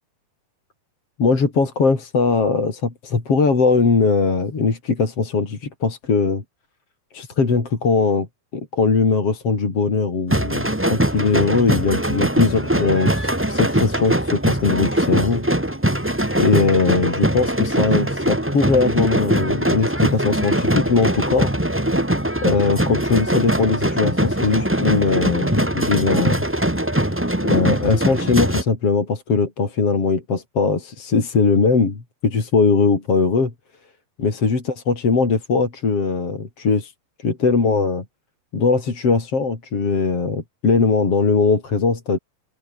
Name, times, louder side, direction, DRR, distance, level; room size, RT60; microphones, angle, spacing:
voice 1, 1.2-6.4 7.1-8.3 8.5-15.4 16.4-21.5 22.4-26.4 27.4-33.5 34.2-36.9 37.2-38.0 38.5-42.2, left 4 dB, 35° left, 5.1 m, -20 dB
sound 1, 10.3-28.6, right 1 dB, 10° right, 0.8 m, -21 dB
omnidirectional pair, 4.6 m